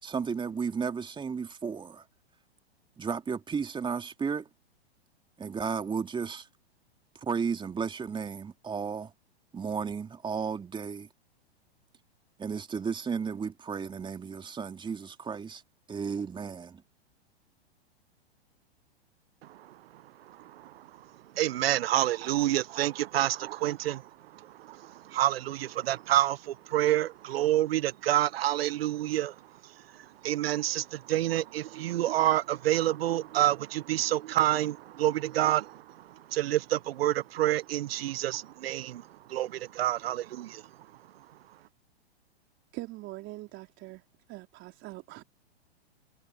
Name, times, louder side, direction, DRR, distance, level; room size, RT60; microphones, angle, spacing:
voice 1, 0.0-2.0 3.0-4.5 5.4-6.5 7.2-9.1 9.5-11.1 12.4-15.6 15.9-16.8, right 6 dB, 15° right, 2.8 m, -33 dB
voice 2, 19.4-29.4 29.6-40.7, right 13 dB, 65° right, 0.8 m, -29 dB
voice 3, 42.7-44.0 44.3-45.2, right 19 dB, 35° right, 3.9 m, -42 dB
hypercardioid pair, 115°, 32 cm